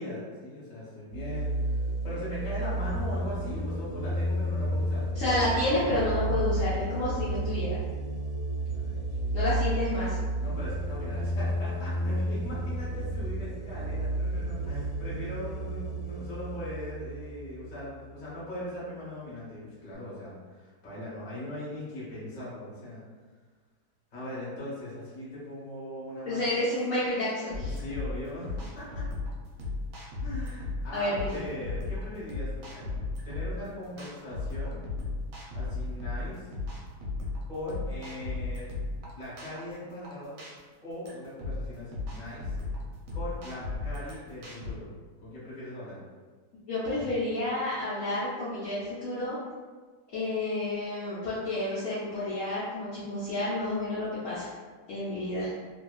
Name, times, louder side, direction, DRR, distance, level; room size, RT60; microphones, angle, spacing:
voice 1, 0.0-1.8 2.0-5.1 8.6-9.3 10.4-23.0 24.1-26.4 27.6-29.0 30.2-33.0 33.2-34.8 35.5-36.5 37.5-38.7 39.1-40.4 40.8-42.6 43.1-44.9 45.2-46.0, left 1 dB, 35° left, -9 dB, 0.8 m, -40 dB
sound 1, 1.1-18.5, right 1 dB, 85° left, 1.2 m, -32 dB
voice 2, 5.1-7.8 9.3-10.2 26.3-27.8 30.9-31.4 46.7-49.4 50.1-54.5 54.9-55.5, left 1 dB, 65° left, -11 dB, 0.9 m, -30 dB
sound 2, 27.5-44.7, left 2 dB, 70° right, 1.0 m, -36 dB
2.7 x 2.2 x 2.2 m, 1.4 s
omnidirectional pair, 1.8 m